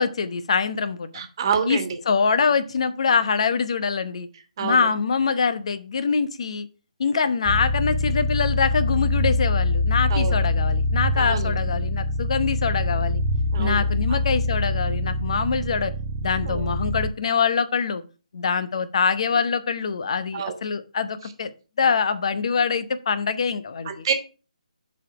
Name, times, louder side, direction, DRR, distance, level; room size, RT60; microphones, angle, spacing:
voice 1, 0.0-1.1 1.7-1.8 2.1-4.3 4.6-6.7 7.0-13.2 13.6-15.9 16.2-18.0 18.3-21.5 21.8-24.0, left 5 dB, 50° left, 12 dB, 0.9 m, -24 dB
voice 2, 1.1-2.0 4.6-4.9 10.1-10.4 11.1-11.5 13.5-13.8 14.1-14.2 16.5-16.6 20.3-20.5 23.8-24.1, right 6 dB, 35° right, 7 dB, 1.5 m, -27 dB
sound 1, 7.5-17.1, left 2 dB, 15° right, 0.8 m, -24 dB
7.3 x 4.3 x 5.9 m, 0.34 s
hypercardioid pair, 160°, 4 cm